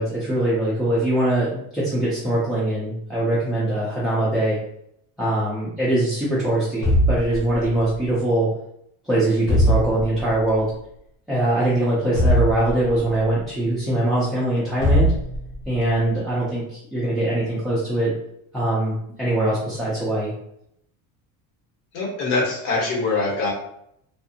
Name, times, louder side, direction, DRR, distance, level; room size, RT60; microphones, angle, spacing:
voice 1, 0.0-4.6 5.2-8.5 9.0-10.7 11.3-15.1 15.7-18.1 18.5-20.3, right 1 dB, ahead, -9 dB, 0.3 m, -22 dB
sound 1, 6.8-8.0 9.5-10.4 12.2-13.2 14.8-15.8, equal, 60° left, 0.9 m, -21 dB
voice 2, 21.9-23.5, left 3 dB, 80° left, -3 dB, 1.2 m, -23 dB
2.4 x 2.4 x 2.7 m, 0.73 s
cardioid pair, 160°, 37 cm